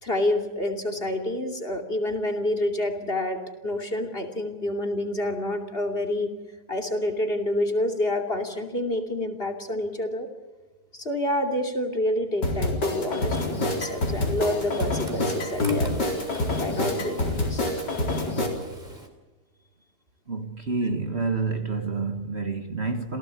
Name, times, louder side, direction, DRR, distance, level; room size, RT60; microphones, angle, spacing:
voice 1, 0.0-6.3 6.7-10.3 10.9-16.3 16.6-18.0, left 1 dB, 35° left, 3.0 m, -28 dB
sound 1, 12.4-18.5, left 2 dB, 90° left, 4.7 m, -26 dB
Frying (food), 13.3-19.1, right 1 dB, 25° right, 3.5 m, -43 dB
voice 2, 20.3-23.2, right 4 dB, 40° right, 1.9 m, -28 dB
28.5 x 17.5 x 8.3 m
omnidirectional pair, 1.8 m